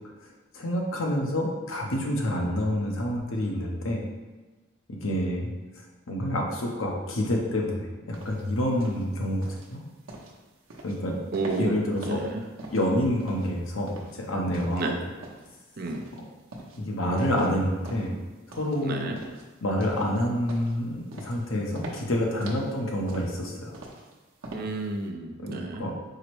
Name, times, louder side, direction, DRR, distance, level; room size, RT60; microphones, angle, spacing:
voice 1, 0.5-4.0 4.9-5.5 6.1-9.8 10.8-11.2 11.6-12.2 12.7-14.9 16.8-18.1 18.5-19.0 19.6-23.7 25.4-25.9, equal, 75° left, 0 dB, 0.8 m, -28 dB
sound 1, 8.1-25.0, right 1 dB, 80° right, 0.8 m, -44 dB
voice 2, 11.3-11.7 12.0-12.4 14.5-15.0 15.8-16.0 18.8-19.2 24.5-25.8, right 3 dB, 50° right, 4 dB, 0.4 m, -31 dB
4.7 x 2.0 x 4.5 m, 1.2 s
head